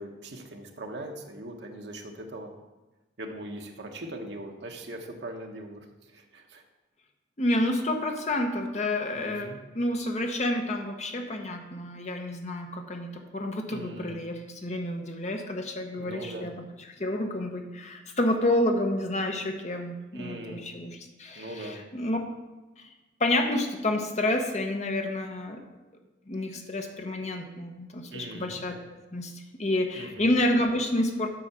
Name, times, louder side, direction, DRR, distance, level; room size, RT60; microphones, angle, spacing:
voice 1, 0.0-2.5 3.2-6.6 9.1-9.6 13.7-14.2 15.8-16.5 20.1-20.6 21.4-21.8 28.1-28.6 29.9-30.3, right 1 dB, 65° right, 2 dB, 1.1 m, -40 dB
voice 2, 7.4-16.7 17.0-22.2 22.8-22.9 23.2-25.6 26.3-28.8 29.1-29.3 29.6-31.3, left 1 dB, 35° left, 4 dB, 0.9 m, -29 dB
8.6 x 4.6 x 6.7 m, 1.1 s
head